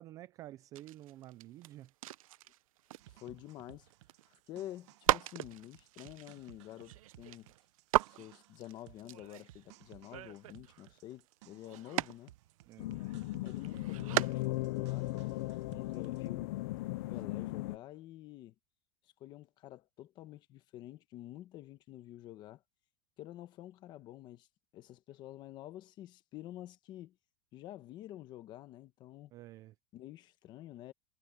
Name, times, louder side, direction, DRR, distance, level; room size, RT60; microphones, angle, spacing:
voice 1, 0.0-1.9 12.7-12.9 29.3-29.7, right 14 dB, 20° right, 0.3 m, -50 dB
sound 1, 0.7-4.4 4.8-12.3 12.6-13.2 13.6-14.8 15.0-15.1 15.3-15.9 17.2-17.3, right 15 dB, 80° right, 0.8 m, -37 dB
sound 2, 3.0-16.3, right 16 dB, 55° right, 1.3 m, -60 dB
voice 2, 3.1-3.9 4.3-7.5 8.1-12.3 13.4-15.4 15.6-16.6 16.9-18.5 19.2-22.6 23.2-24.5 24.7-27.2 27.5-29.3 29.9-30.9, left 14 dB, 25° left, 1.0 m, -49 dB
sound 3, 12.8-17.8, left 19 dB, 50° left, 0.5 m, -37 dB
supercardioid pair, 175°, 17 cm